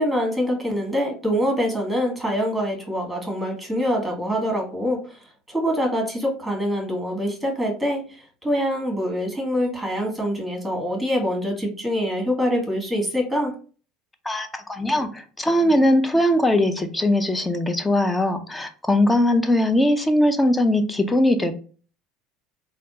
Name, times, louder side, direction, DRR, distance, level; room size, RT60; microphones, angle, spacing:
voice 1, 0.0-5.0 5.5-8.0 8.4-13.5, equal, 5° right, 1 dB, 1.7 m, -24 dB
voice 2, 14.3-21.5, left 1 dB, 15° left, 8 dB, 0.6 m, -20 dB
3.4 x 2.4 x 2.8 m, 0.39 s
hypercardioid pair, 75°, 0 cm